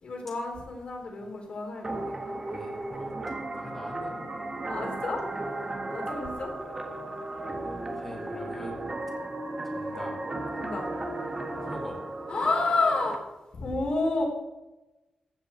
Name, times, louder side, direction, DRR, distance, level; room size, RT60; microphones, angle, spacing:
voice 1, 0.0-2.4 4.7-5.2 5.9-6.5 10.6-10.8 12.3-13.2 13.5-14.2, left 3 dB, 55° left, 0 dB, 3.6 m, -30 dB
sound 1, 1.8-13.2, right 2 dB, 25° right, 1.5 m, -35 dB
voice 2, 2.5-3.1 3.6-4.3 8.0-8.8 9.6-10.1 11.6-12.0, left 1 dB, 15° left, -3 dB, 2.4 m, -42 dB
15.5 x 9.0 x 4.5 m, 1.0 s
wide cardioid pair, 160°, 2 cm